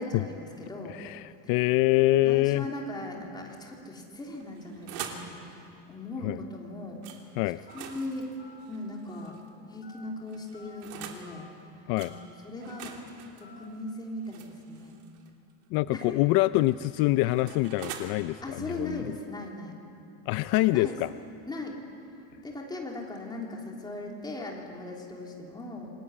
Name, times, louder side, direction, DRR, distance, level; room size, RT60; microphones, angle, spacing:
voice 1, 0.0-1.0 2.2-7.0 7.7-8.3 8.7-9.4 9.7-11.5 12.0-12.9 13.4-15.0 15.9-16.3 18.4-19.8 20.7-21.0 21.4-21.8 22.4-25.9, left 2 dB, 10° left, -1 dB, 3.3 m, -38 dB
voice 2, 0.9-2.7 6.2-6.4 7.4-7.6 11.9-12.1 15.7-19.1 20.3-21.1, left 18 dB, 65° left, 14 dB, 0.5 m, -25 dB
sound 1, 4.3-5.3 7.0-7.2 7.6-9.5 10.3-11.3 12.0-12.1 12.6-15.3 16.4-18.1, right 9 dB, 75° right, 3.2 m, -44 dB
Telephone, 7.7-7.9 8.4-8.7 9.1-9.4 9.8-10.1 10.5-10.8 11.3-11.5 12.0-12.2 12.7-13.0 13.4-13.7, left 3 dB, 25° left, 3.6 m, -52 dB
27.0 x 20.5 x 9.8 m, 2.6 s
cardioid pair, 170°, 38 cm